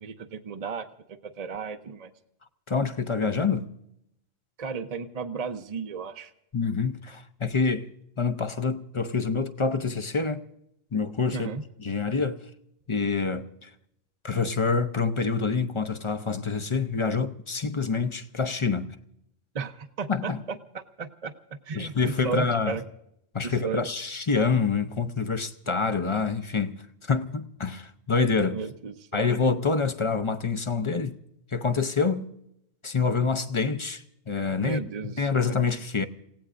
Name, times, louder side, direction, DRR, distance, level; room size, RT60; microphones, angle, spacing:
voice 1, 0.0-2.1 4.6-6.3 11.3-11.6 19.5-20.3 20.7-21.3 21.7-21.9 22.2-22.8 23.4-23.8 28.5-29.3 34.6-35.5, right 5 dB, 40° right, 0.8 m, -35 dB
voice 2, 2.7-3.7 6.5-7.9 8.2-10.5 10.9-11.5 11.8-12.4 12.9-13.7 14.2-19.0 20.1-20.4 21.7-22.8 23.3-28.6 29.1-31.2 31.5-32.3 32.8-36.1, left 5 dB, 30° left, 0.7 m, -27 dB
29.5 x 17.0 x 2.5 m
omnidirectional pair, 1.1 m